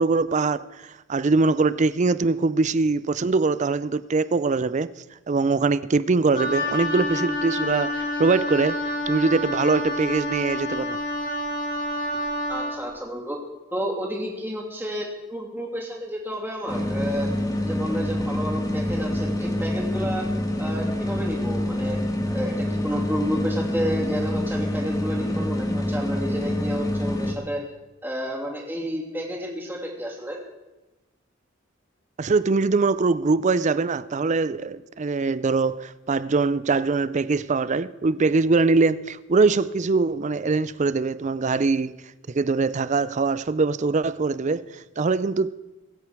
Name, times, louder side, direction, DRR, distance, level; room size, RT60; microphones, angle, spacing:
voice 1, 0.0-4.9 5.3-11.0 32.2-41.9 42.3-45.5, right 3 dB, 35° right, 0.5 m, -22 dB
Wind instrument woodwind instrument, 6.3-12.8, left 1 dB, 45° left, 2.1 m, -28 dB
voice 2, 12.5-13.4 13.7-17.3 17.6-20.3 20.6-22.0 22.3-27.6 28.0-30.4, equal, 10° right, 2.9 m, -31 dB
sound 1, 16.7-27.3, left 1 dB, 20° left, 1.6 m, -26 dB
23.0 x 8.3 x 4.8 m
head